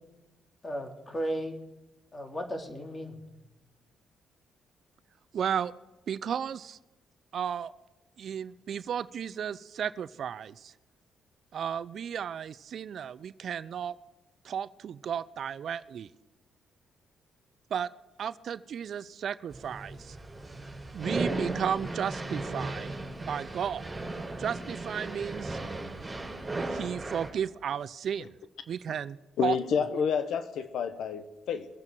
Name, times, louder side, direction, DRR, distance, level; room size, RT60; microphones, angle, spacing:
voice 1, 0.6-1.6 2.1-3.2, equal, 25° left, 3 dB, 2.7 m, -35 dB
voice 2, 5.3-5.7 6.1-6.8 7.3-7.7 8.2-10.7 11.5-13.9 14.4-16.1 17.7-17.9 18.2-20.2 20.9-22.9 23.3-23.9 24.4-25.6 26.5-28.3 28.7-29.6, right 8 dB, 60° right, 16 dB, 0.5 m, -34 dB
sound 1, 19.5-27.3, right 2 dB, 15° right, 4.8 m, -36 dB
voice 3, 29.4-31.7, left 7 dB, 75° left, 11 dB, 0.9 m, -29 dB
22.5 x 8.7 x 4.6 m, 1.0 s
cardioid pair, 90°, 0 cm